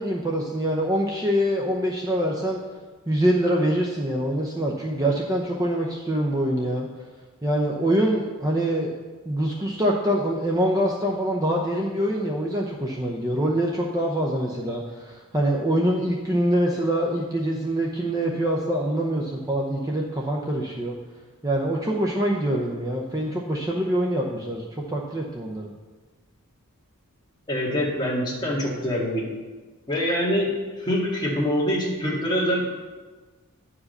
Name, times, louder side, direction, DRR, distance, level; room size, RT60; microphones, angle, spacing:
voice 1, 0.0-2.6 3.1-6.9 7.4-8.9 9.2-21.0 21.4-25.7, right 1 dB, 15° right, -1 dB, 0.7 m, -24 dB
voice 2, 27.5-29.3 29.9-32.7, equal, 20° left, -4 dB, 2.0 m, -25 dB
10.0 x 4.9 x 6.5 m, 1.3 s
head